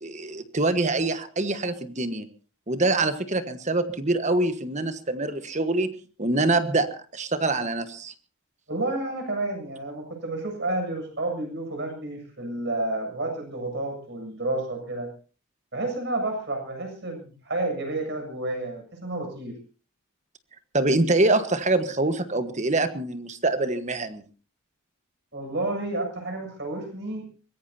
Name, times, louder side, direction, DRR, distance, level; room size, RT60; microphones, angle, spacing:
voice 1, 0.0-2.3 2.7-5.9 6.2-6.9 7.1-8.1 20.7-24.2, right 2 dB, 35° right, 10 dB, 1.4 m, -25 dB
voice 2, 8.7-15.1 15.7-19.6 25.3-27.3, right 2 dB, 50° right, 4 dB, 7.5 m, -30 dB
23.0 x 21.0 x 2.8 m, 0.38 s
head